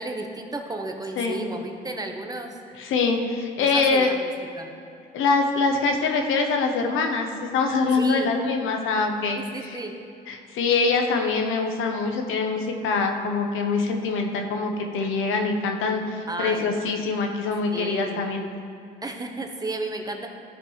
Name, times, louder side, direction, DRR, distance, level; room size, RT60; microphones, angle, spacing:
voice 1, 0.0-2.6 3.6-4.3 4.5-4.7 7.9-8.3 9.4-9.9 16.3-16.7 17.7-18.3 19.0-20.3, right 2 dB, 20° right, 3 dB, 0.9 m, -33 dB
voice 2, 2.8-4.1 5.1-7.3 7.5-9.8 10.3-18.4, left 4 dB, 85° left, 3 dB, 0.9 m, -24 dB
14.0 x 5.3 x 3.2 m, 2.5 s
cardioid pair, 90°, 20 cm